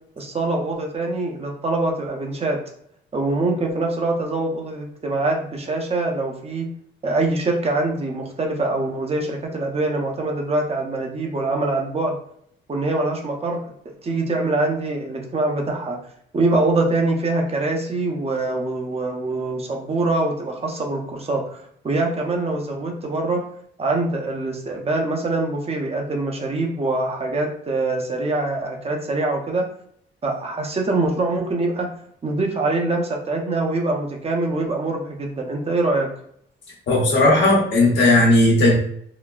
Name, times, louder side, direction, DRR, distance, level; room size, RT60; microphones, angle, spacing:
voice 1, 0.2-2.6 3.1-6.7 7.0-12.2 12.7-13.6 14.0-16.0 16.3-21.4 21.8-23.4 23.8-29.6 30.2-31.9 32.2-36.1, right 2 dB, 30° right, 1 dB, 0.8 m, -24 dB
voice 2, 36.9-38.8, left 1 dB, 70° left, -3 dB, 1.1 m, -16 dB
3.9 x 2.2 x 2.3 m, 0.66 s
cardioid pair, 90°, 20 cm